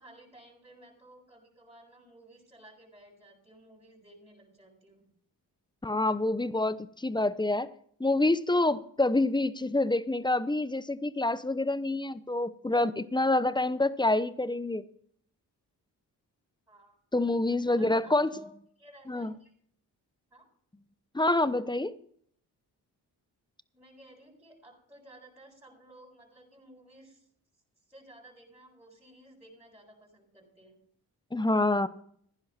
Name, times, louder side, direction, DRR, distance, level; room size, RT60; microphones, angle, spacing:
voice 1, 0.0-5.0 16.7-16.9 17.7-18.5 18.8-19.5 20.3-20.4 23.7-27.3 27.9-30.8, right 1 dB, 5° right, -8 dB, 7.6 m, -55 dB
voice 2, 5.8-7.7 8.0-14.8 17.1-18.3 19.1-19.3 21.1-21.9 31.3-31.9, left 2 dB, 10° left, 15 dB, 0.8 m, -27 dB
15.5 x 10.5 x 4.3 m, 0.63 s
supercardioid pair, 45°, 43 cm